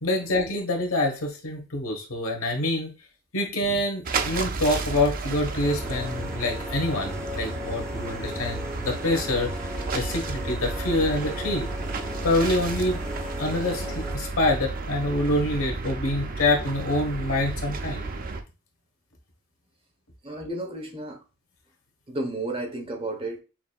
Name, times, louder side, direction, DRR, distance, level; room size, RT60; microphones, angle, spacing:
voice 1, 0.0-2.9 3.3-9.5 9.9-11.7 11.9-13.0 13.4-18.1, left 1 dB, 75° left, 1.3 m, -26 dB
sound 1, 4.0-18.4, right 3 dB, 40° right, 0.5 m, -32 dB
sound 2, 5.6-14.3, left 2 dB, 5° left, 0.8 m, -38 dB
voice 2, 20.2-21.2 22.1-23.4, right 2 dB, 25° right, 0.9 m, -32 dB
6.0 x 2.7 x 2.3 m
head